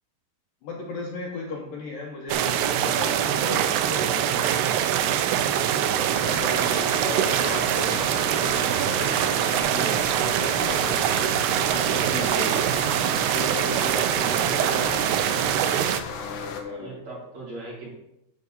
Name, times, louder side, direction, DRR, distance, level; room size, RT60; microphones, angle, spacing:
voice 1, 0.6-4.6 5.7-9.1 9.4-10.0 10.4-11.2 11.7-12.6 13.3-15.1 16.1-16.9, left 3 dB, 75° left, -1 dB, 2.1 m, -36 dB
sound 1, 2.3-16.0, right 10 dB, 85° right, 2.4 m, -23 dB
sound 2, 6.1-16.6, left 6 dB, 90° left, 1.8 m, -37 dB
voice 2, 11.8-12.6 16.7-17.9, right 3 dB, 45° right, -5 dB, 2.9 m, -39 dB
10.5 x 3.6 x 6.7 m, 0.86 s
omnidirectional pair, 5.0 m